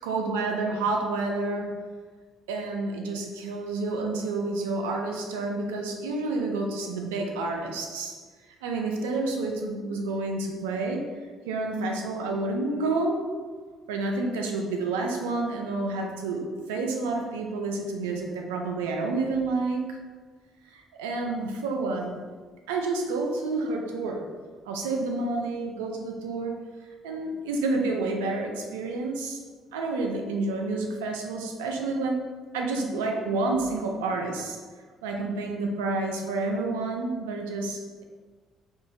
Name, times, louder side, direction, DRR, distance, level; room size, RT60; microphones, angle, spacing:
voice 1, 0.0-1.8 2.5-8.2 8.6-11.1 11.5-13.3 13.9-20.0 20.7-22.2 22.7-24.3 24.7-26.6 27.0-29.4 29.7-34.6 35.0-38.0, right 3 dB, 90° right, 1 dB, 0.4 m, -29 dB
3.5 x 2.5 x 2.6 m, 1.4 s
hypercardioid pair, 60°, 0 cm